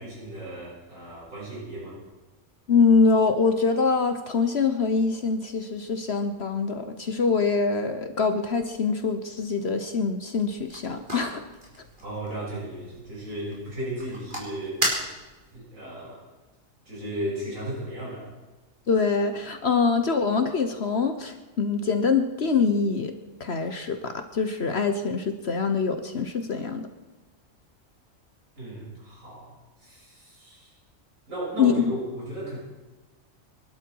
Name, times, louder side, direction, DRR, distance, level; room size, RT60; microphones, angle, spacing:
voice 1, 0.0-2.0 12.0-14.8 15.5-16.2 16.9-18.3 28.6-30.7 31.3-32.6, right 1 dB, 75° right, -6 dB, 7.4 m, -35 dB
voice 2, 2.7-11.4 18.9-23.1 23.4-26.9 31.6-31.9, left 5 dB, 55° left, 7 dB, 1.3 m, -24 dB
sound 1, 10.3-15.6, right 1 dB, 40° right, 4.3 m, -35 dB
24.5 x 12.5 x 4.7 m, 1.2 s
omnidirectional pair, 1.4 m